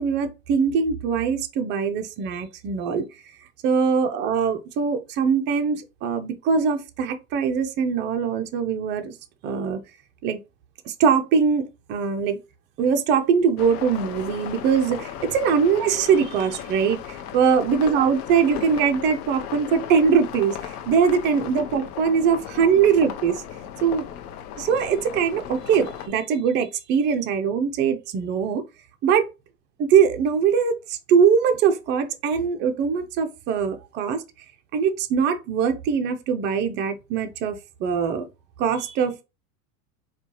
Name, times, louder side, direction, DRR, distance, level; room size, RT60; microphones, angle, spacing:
voice 1, 0.0-3.1 3.6-9.1 9.4-9.8 10.2-10.4 10.8-12.4 12.8-23.4 23.8-24.0 24.6-28.6 29.0-29.3 29.8-34.2 34.7-38.3 38.6-39.2, right 6 dB, 25° right, 0.4 m, -22 dB
sound 1, 13.6-26.1, left 10 dB, 75° left, 0.7 m, -36 dB
4.3 x 2.3 x 2.8 m
hypercardioid pair, 115°, 46 cm